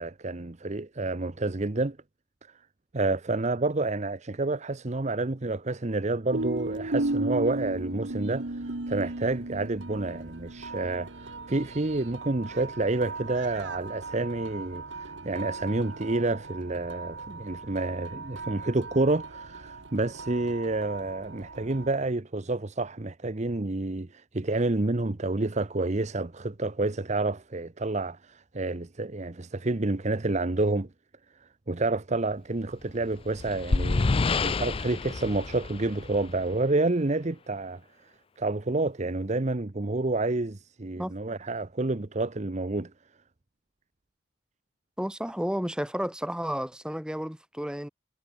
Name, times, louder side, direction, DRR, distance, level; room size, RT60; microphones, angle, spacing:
voice 1, 0.0-2.0 2.9-30.9 31.7-37.8 38.4-42.9, right 2 dB, 35° right, 0.9 m, -29 dB
sound 1, 6.3-22.0, right 2 dB, 65° right, 1.5 m, -36 dB
sound 2, 32.9-36.6, left 3 dB, 30° left, 0.4 m, -28 dB
voice 2, 45.0-47.9, equal, 5° right, 1.5 m, -32 dB
head